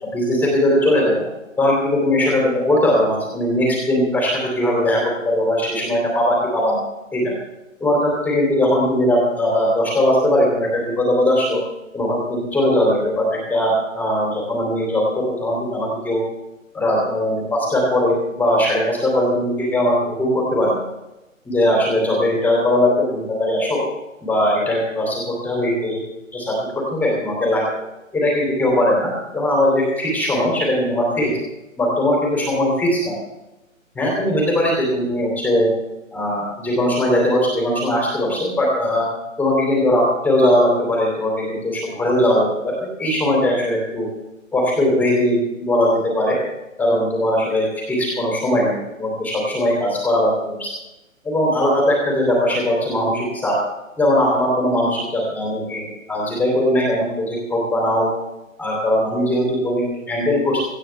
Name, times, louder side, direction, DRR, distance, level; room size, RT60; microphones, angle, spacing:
voice 1, 0.1-1.3 1.6-6.8 7.1-7.3 7.8-11.6 11.9-16.2 16.7-20.9 21.4-23.8 24.2-26.0 26.3-27.6 28.1-31.3 31.8-33.1 33.9-35.7 36.1-39.1 39.4-44.1 44.5-46.4 46.8-50.7 51.2-53.6 54.0-58.1 58.6-60.6, left 1 dB, 5° left, -2 dB, 3.1 m, -19 dB
18.0 x 15.0 x 3.4 m, 0.96 s
hypercardioid pair, 155°, 41 cm